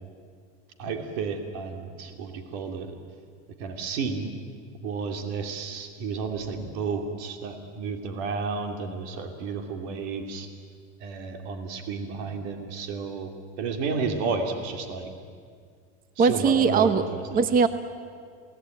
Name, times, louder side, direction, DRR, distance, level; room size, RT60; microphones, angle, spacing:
voice 1, 0.8-2.9 3.6-4.3 4.8-10.5 11.0-13.3 13.6-15.1 16.2-17.4, right 4 dB, 65° right, 5 dB, 2.9 m, -32 dB
voice 2, 16.2-17.0 17.3-17.7, right 5 dB, 25° right, 11 dB, 1.1 m, -20 dB
28.0 x 18.0 x 9.2 m, 2.1 s
supercardioid pair, 130°, 34 cm